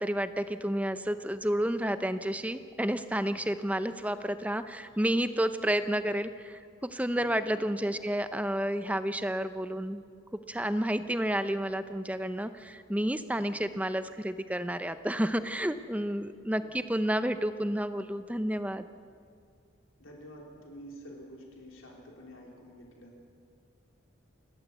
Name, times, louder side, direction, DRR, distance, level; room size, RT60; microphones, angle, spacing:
voice 1, 0.0-10.0 10.3-18.9, equal, 5° right, 10 dB, 0.7 m, -30 dB
voice 2, 7.2-7.6 16.6-16.7 20.0-23.1, equal, 85° left, -1 dB, 3.9 m, -49 dB
28.5 x 13.0 x 8.3 m, 2.3 s
head